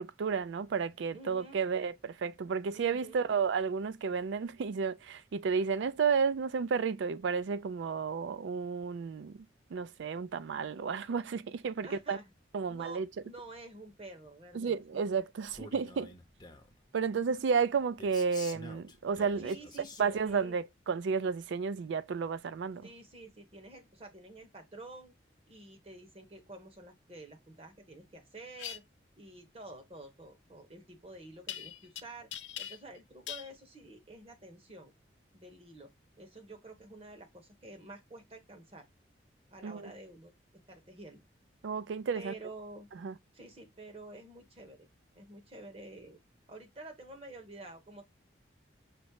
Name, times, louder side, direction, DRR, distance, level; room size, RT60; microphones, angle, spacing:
voice 1, 0.0-9.5 9.7-12.2 12.5-13.1 14.5-16.1 16.9-19.6 20.0-22.9 39.6-39.9 41.6-42.3 43.0-43.1, right 5 dB, 75° right, 0.4 m, -32 dB
voice 2, 1.1-1.6 2.7-3.3 11.8-12.3 12.7-15.1 19.4-20.6 22.8-25.1 25.5-28.8 29.1-32.3 32.6-34.9 35.3-35.9 36.2-38.9 39.5-40.3 40.7-41.2 42.1-42.9 43.3-44.9 45.1-46.2 46.5-48.0, right 2 dB, 30° right, 1.0 m, -49 dB
Male speech man speaking, 15.4-16.8 18.0-20.4, left 3 dB, 20° left, 0.7 m, -49 dB
sound 1, 28.6-28.8 31.5-32.0 32.3-33.0 33.3-33.5, left 10 dB, 80° left, 0.5 m, -41 dB
5.1 x 2.1 x 4.5 m
head